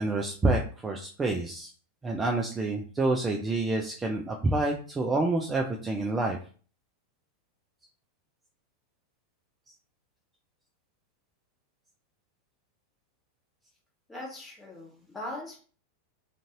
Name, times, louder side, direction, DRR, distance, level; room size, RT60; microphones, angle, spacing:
voice 1, 0.0-1.7 2.0-6.4, right 2 dB, 15° right, 2 dB, 0.4 m, -28 dB
voice 2, 14.1-15.6, left 1 dB, 10° left, -2 dB, 1.1 m, -40 dB
2.5 x 2.4 x 2.9 m, 0.40 s
figure-of-eight pair, 90°, 0 cm